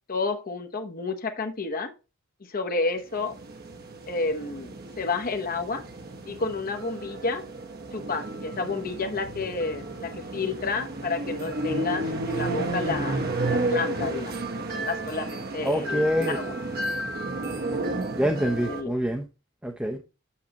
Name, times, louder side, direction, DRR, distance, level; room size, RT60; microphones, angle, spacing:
voice 1, 0.1-1.9 2.5-3.3 4.0-5.8 6.3-7.4 7.9-13.2 13.5-14.4 14.7-16.5 18.6-19.0, left 3 dB, 45° left, 1.0 m, -30 dB
sound 1, 3.1-18.8, right 2 dB, 50° right, 1.1 m, -32 dB
voice 2, 15.6-16.4 18.2-19.3 19.6-20.0, equal, 5° right, 0.7 m, -25 dB
8.4 x 6.5 x 2.9 m
head